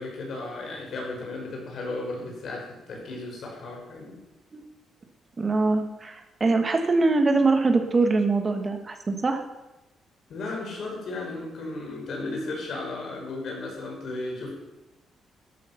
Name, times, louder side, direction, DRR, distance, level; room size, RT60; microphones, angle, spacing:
voice 1, 0.0-4.1 10.3-14.5, left 2 dB, 55° left, 0 dB, 5.5 m, -35 dB
voice 2, 5.4-9.4, right 3 dB, 25° right, 5 dB, 1.6 m, -23 dB
13.5 x 11.5 x 5.7 m, 1.0 s
cardioid pair, 150°, 0 cm